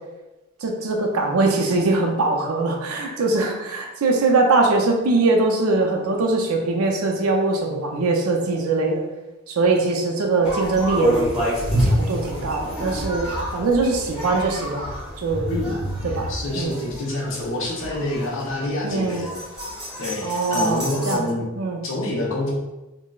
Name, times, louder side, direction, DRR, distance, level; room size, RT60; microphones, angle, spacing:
voice 1, 0.6-9.0 9.5-11.4 11.8-14.9 15.2-15.5 16.0-16.3 16.6-16.8 18.8-19.2 20.2-21.3 21.6-21.8, right 3 dB, 85° right, 2 dB, 0.5 m, -22 dB
sound 1, 10.4-21.1, equal, 5° right, 0.9 m, -28 dB
voice 2, 16.3-19.3 20.0-21.4 21.8-22.5, left 1 dB, 60° left, -4 dB, 0.7 m, -27 dB
3.8 x 2.1 x 2.3 m, 1.0 s
head